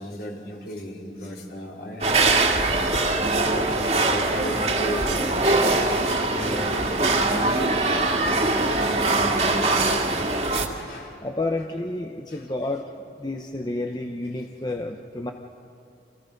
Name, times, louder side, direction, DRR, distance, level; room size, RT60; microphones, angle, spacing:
voice 1, 0.0-2.8 3.3-5.5 6.2-7.8 8.5-10.1 10.7-11.2 12.3-12.5, equal, 60° left, -2 dB, 4.4 m, -36 dB
sound 1, 2.0-10.7, right 2 dB, 35° right, 2.2 m, -22 dB
voice 2, 11.2-12.8 13.2-15.3, left 2 dB, 25° left, 3 dB, 0.8 m, -30 dB
29.5 x 27.5 x 5.3 m, 2.5 s
head